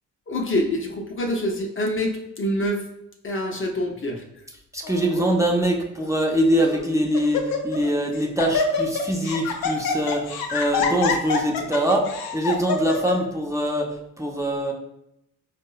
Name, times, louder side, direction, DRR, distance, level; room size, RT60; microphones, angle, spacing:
voice 1, 0.3-2.9 3.2-4.2, left 1 dB, 35° left, 2 dB, 0.6 m, -26 dB
voice 2, 4.7-14.7, right 1 dB, 10° right, 0 dB, 0.6 m, -23 dB
Laughter, 4.8-5.2 6.0-6.1 6.6-6.9 7.1-7.9 8.1-13.2, left 5 dB, 75° left, 0.6 m, -26 dB
4.3 x 2.0 x 2.3 m, 0.82 s
supercardioid pair, 50°, 36 cm